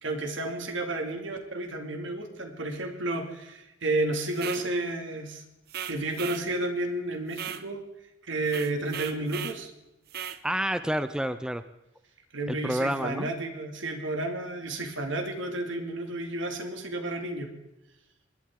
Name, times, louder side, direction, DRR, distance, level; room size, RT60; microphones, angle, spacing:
voice 1, 0.0-5.4 5.8-7.8 8.2-9.7 12.3-17.5, right 2 dB, 80° right, 4 dB, 2.3 m, -31 dB
sound 1, 4.3-4.7 5.7-6.5 7.3-7.7 8.5-9.6 10.1-10.4, right 9 dB, 55° right, 0.7 m, -37 dB
voice 2, 10.4-11.6 12.5-13.3, equal, 5° right, 11 dB, 0.4 m, -29 dB
20.5 x 11.5 x 3.7 m, 0.93 s
head